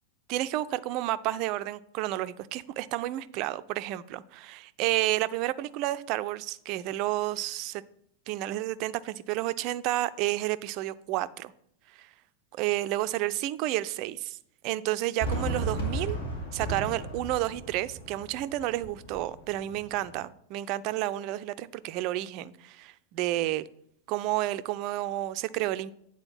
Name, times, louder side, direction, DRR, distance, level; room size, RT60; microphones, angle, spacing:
voice 1, 0.3-7.8 8.3-11.5 12.0-12.1 12.5-14.4 14.6-16.2 16.5-23.6 24.1-25.9, right 15 dB, 40° right, 0.4 m, -31 dB
Fireworks, 15.2-20.2, right 1 dB, 65° left, 2.5 m, -35 dB
8.7 x 4.3 x 5.6 m
figure-of-eight pair, 90°, 0 cm